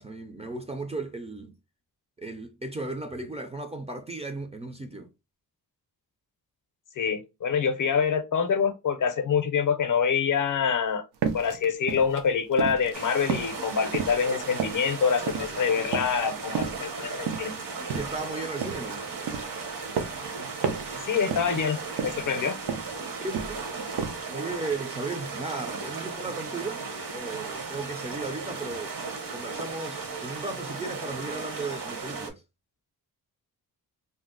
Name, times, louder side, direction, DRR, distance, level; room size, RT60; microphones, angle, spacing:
voice 1, 0.0-1.6 2.2-5.1 15.3-15.6 17.9-19.1 22.1-22.5 23.2-23.6 24.3-26.8 27.1-29.0 29.3-32.4, right 3 dB, 15° right, 0.4 m, -36 dB
voice 2, 7.0-11.0 11.3-17.5 21.1-22.6, left 6 dB, 55° left, 0.6 m, -26 dB
sound 1, 11.2-13.0 13.3-15.7 15.9-16.3 16.5-19.0 19.3-20.3 20.6-21.0 21.2-21.7 22.0-23.0 23.2-23.7 24.0-24.2, right 7 dB, 80° right, 0.6 m, -32 dB
sound 2, 12.9-32.3, right 4 dB, 60° right, 1.0 m, -36 dB
2.7 x 2.0 x 3.7 m
cardioid pair, 90°, 39 cm